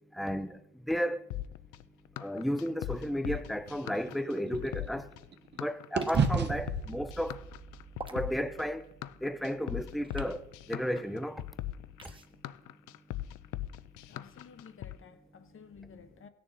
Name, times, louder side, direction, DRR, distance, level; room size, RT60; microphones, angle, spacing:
voice 1, 0.1-1.3 2.2-5.1 5.5-7.4 8.1-8.9 9.2-11.5, equal, ahead, 0.5 m, -33 dB
sound 1, 1.3-15.0, left 14 dB, 90° left, 0.5 m, -40 dB
sound 2, 3.3-5.6 5.9-10.2, right 6 dB, 35° right, 0.8 m, -35 dB
sound 3, 6.0-6.3 8.0-8.2 10.0-10.3 12.0-12.3, right 3 dB, 15° right, 1.0 m, -44 dB
voice 2, 14.1-16.3, left 6 dB, 45° left, 0.8 m, -53 dB
16.0 x 6.8 x 4.0 m
cardioid pair, 90°, 30 cm